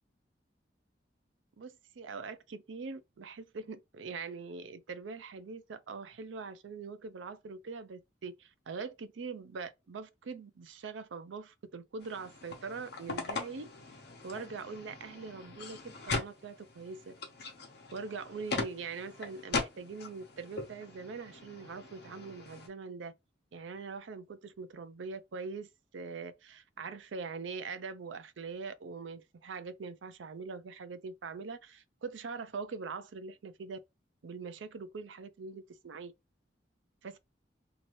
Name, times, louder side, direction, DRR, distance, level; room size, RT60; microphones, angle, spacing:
voice 1, 1.6-13.7 14.2-17.1 17.9-23.1 23.5-25.7 25.9-33.8 34.2-36.1 37.0-37.2, right 4 dB, 90° right, 0.5 m, -43 dB
sound 1, 12.0-22.7, left 3 dB, 60° left, 0.9 m, -40 dB
2.8 x 2.6 x 3.0 m
head